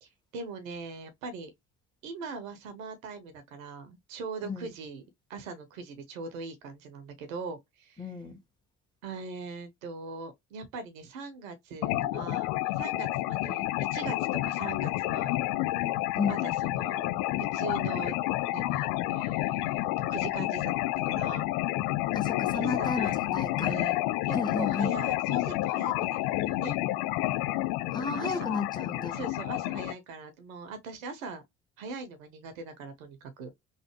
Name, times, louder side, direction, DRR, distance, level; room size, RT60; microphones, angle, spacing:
voice 1, 0.0-1.5 2.0-5.0 5.3-8.1 9.0-14.2 14.4-15.4 16.3-17.1 17.4-18.2 18.5-21.5 22.5-23.1 23.6-23.9 24.3-26.8 28.1-28.6 29.1-31.4 31.8-33.5, right 4 dB, 85° right, 1.0 m, -41 dB
voice 2, 8.0-8.4 13.5-13.6 16.2-16.4 22.1-23.7 24.3-25.0 27.9-29.2, left 4 dB, 10° left, 1.4 m, -33 dB
sound 1, 11.8-29.9, left 17 dB, 65° left, 0.6 m, -30 dB
3.3 x 2.5 x 3.0 m
hypercardioid pair, 55°, 40 cm